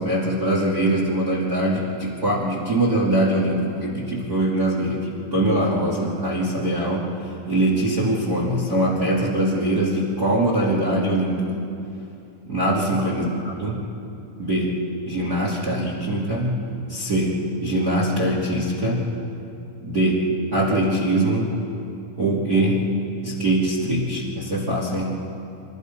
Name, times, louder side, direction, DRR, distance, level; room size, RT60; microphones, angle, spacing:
voice 1, 0.0-7.1 7.5-11.5 12.5-13.8 14.4-14.8 15.1-16.6 16.9-19.1 19.8-21.5 22.2-22.9 23.2-25.1, right 1 dB, 30° right, -3 dB, 2.0 m, -22 dB
26.5 x 21.5 x 5.5 m, 2.7 s
omnidirectional pair, 5.4 m